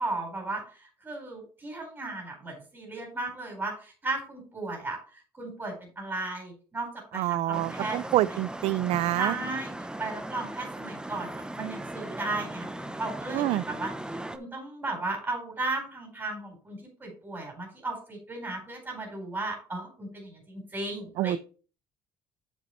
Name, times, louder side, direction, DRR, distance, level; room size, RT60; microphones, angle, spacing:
voice 1, 0.0-5.0 5.3-8.0 8.3-8.4 9.1-13.9 14.3-21.4, right 2 dB, 20° right, 4.2 m, -35 dB
voice 2, 7.1-9.3 13.3-13.6 21.2-21.4, right 15 dB, 65° right, 0.4 m, -26 dB
sound 1, 7.5-14.4, right 1 dB, 5° right, 0.7 m, -38 dB
8.2 x 7.1 x 3.1 m
supercardioid pair, 95°, 11 cm